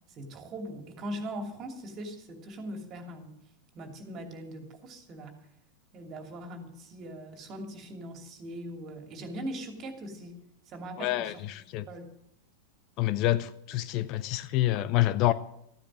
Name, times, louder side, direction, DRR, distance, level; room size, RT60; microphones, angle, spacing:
voice 1, 0.1-3.4 3.7-5.4 5.9-10.4 10.7-11.4 11.9-12.1, right 1 dB, 30° right, 5 dB, 2.7 m, -40 dB
voice 2, 11.0-11.9 13.0-15.3, left 15 dB, 40° left, 15 dB, 0.6 m, -27 dB
14.5 x 10.0 x 7.6 m, 0.77 s
figure-of-eight pair, 90°, 0 cm